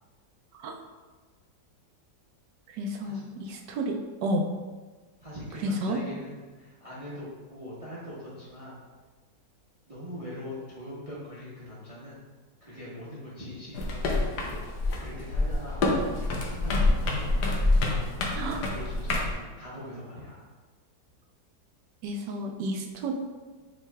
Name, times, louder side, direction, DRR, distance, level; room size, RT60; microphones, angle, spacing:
voice 1, 2.7-4.5 5.6-6.0 18.4-18.6 22.0-23.1, right 1 dB, 75° right, 2 dB, 1.1 m, -31 dB
voice 2, 5.2-8.8 9.9-12.2 12.6-14.6 15.0-15.8 16.2-17.5 17.8-18.1 18.4-20.4, equal, 30° right, -8 dB, 0.7 m, -42 dB
sound 1, 13.7-19.3, left 2 dB, 70° left, 1.3 m, -27 dB
7.3 x 3.1 x 2.3 m, 1.4 s
omnidirectional pair, 1.9 m